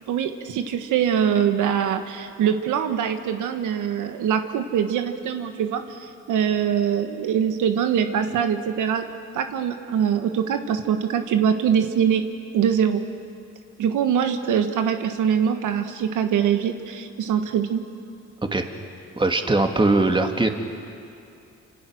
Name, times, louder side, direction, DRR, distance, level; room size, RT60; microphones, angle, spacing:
voice 1, 0.1-9.1 9.3-12.2 12.5-13.0 13.8-17.8, right 8 dB, 80° right, 7 dB, 1.6 m, -23 dB
voice 2, 19.2-20.5, right 2 dB, 15° right, 4 dB, 2.3 m, -20 dB
27.5 x 27.0 x 6.4 m, 2.5 s
cardioid pair, 90°, 30 cm